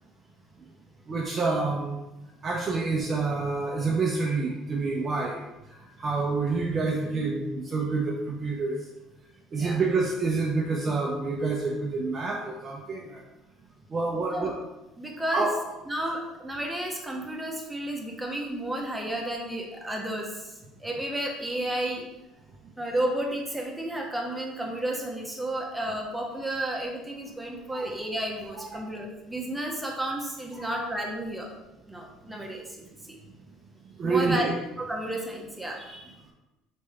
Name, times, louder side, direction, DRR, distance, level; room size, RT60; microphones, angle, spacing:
voice 1, 1.1-2.0 2.4-5.5 6.0-8.8 9.5-13.2 13.9-14.5 15.3-15.5 27.7-27.9 28.7-28.8 30.5-30.8 34.0-34.6, right 3 dB, 35° right, -2 dB, 0.6 m, -28 dB
voice 2, 15.0-15.5 15.9-20.3 20.8-22.1 22.8-31.5 31.9-32.6 33.1-33.2 34.0-34.5 34.8-36.1, right 1 dB, 5° right, 0 dB, 0.9 m, -32 dB
4.2 x 3.2 x 3.5 m, 0.99 s
supercardioid pair, 110°, 0 cm